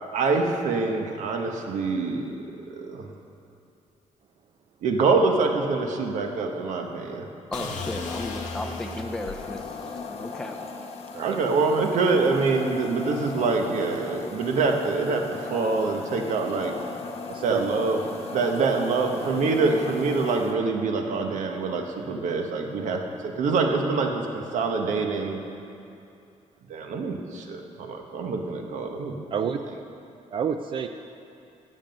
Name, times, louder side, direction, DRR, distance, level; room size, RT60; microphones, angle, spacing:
voice 1, 0.1-2.3 2.7-3.1 4.8-7.3 11.2-16.7 17.4-18.0 18.3-25.4 26.7-29.2, right 4 dB, 75° right, 3 dB, 1.2 m, -25 dB
sound 1, 7.5-9.5, left 4 dB, 85° left, 1.1 m, -35 dB
voice 2, 7.5-10.6, left 1 dB, 5° left, 3 dB, 0.5 m, -34 dB
sound 2, 8.1-20.6, left 4 dB, 55° left, 1.0 m, -38 dB
voice 3, 17.3-17.6 18.6-18.7 29.3-29.6 30.3-30.9, right 8 dB, 45° right, 7 dB, 0.4 m, -28 dB
15.0 x 7.5 x 5.3 m, 2.6 s
cardioid pair, 175°, 13 cm